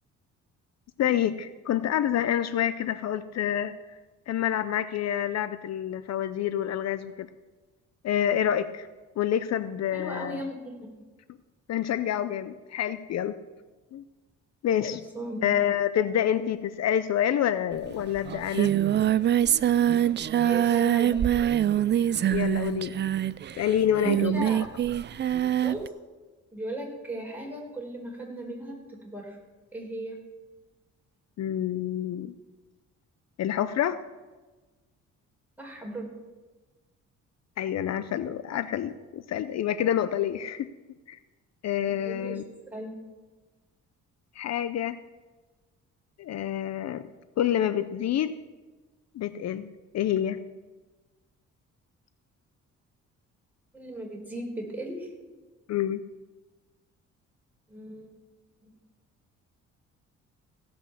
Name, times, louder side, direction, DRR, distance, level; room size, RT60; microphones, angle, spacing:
voice 1, 1.0-4.0 4.3-7.3 8.0-8.9 9.2-10.4 11.7-13.4 13.9-14.0 14.6-15.0 15.4-18.7 22.3-23.0 23.6-24.5 31.4-32.3 33.4-34.0 37.6-40.7 41.1-41.2 41.6-42.4 44.4-45.0 46.2-47.1 47.4-48.3 49.1-50.4 55.7-56.0, left 10 dB, 60° left, 14 dB, 0.6 m, -27 dB
voice 2, 9.9-10.9 14.9-15.4 20.3-21.2 24.0-24.7 25.6-25.8 26.5-29.4 29.7-30.2 35.6-36.0 42.0-42.4 42.7-42.9 53.7-55.1 57.7-58.1 58.6-58.7, right 1 dB, 5° right, -1 dB, 4.3 m, -37 dB
Singing, 17.8-17.9 18.2-25.9, right 11 dB, 35° right, 0.4 m, -24 dB
16.5 x 6.1 x 7.3 m, 1.2 s
cardioid pair, 90°, 30 cm